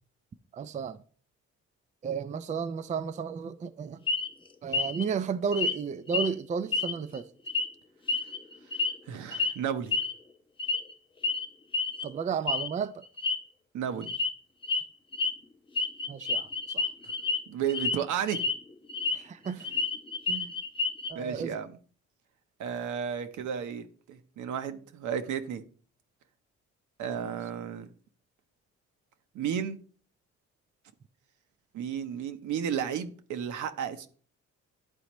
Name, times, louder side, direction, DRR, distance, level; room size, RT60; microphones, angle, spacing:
voice 1, 0.5-1.0 2.0-4.0 4.6-7.3 12.0-13.0 16.1-16.9 19.1-19.7 20.3-20.5 21.1-21.6, right 6 dB, 25° right, 0.4 m, -33 dB
sound 1, 4.1-4.3 4.7-5.0 5.5-5.8 6.1-6.3 6.7-7.2 7.5-7.7 8.1-9.0 9.3-9.5 9.9-10.1 10.6-10.9 11.2-11.5 11.7-12.0 12.5-12.7 13.0-13.4 14.0-14.3 14.6-14.8 15.1-15.3 15.8-17.4 17.7-18.0 18.3-19.2 19.5-21.1, left 4 dB, 15° left, 0.7 m, -29 dB
voice 2, 9.1-10.0 13.7-14.1 17.0-17.1 17.5-18.4 21.1-21.7 22.6-25.6 27.0-27.9 29.3-29.8 31.7-34.1, right 8 dB, 75° right, 0.8 m, -33 dB
11.5 x 4.2 x 3.0 m
cardioid pair, 90°, 30 cm